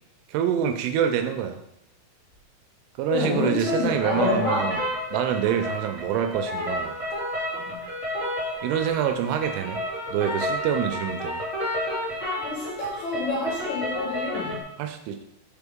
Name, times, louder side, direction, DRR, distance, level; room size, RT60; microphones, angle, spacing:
voice 1, 0.3-1.6 3.0-4.8 5.1-6.9 8.6-9.8 10.1-11.4 14.8-15.2, right 9 dB, 85° right, 7 dB, 2.8 m, -26 dB
voice 2, 3.1-4.7 7.5-7.8 12.4-14.6, left 3 dB, 75° left, -7 dB, 1.6 m, -28 dB
sound 1, 3.6-14.6, left 1 dB, 50° right, 0.4 m, -31 dB
6.8 x 4.3 x 3.5 m, 0.82 s
omnidirectional pair, 5.6 m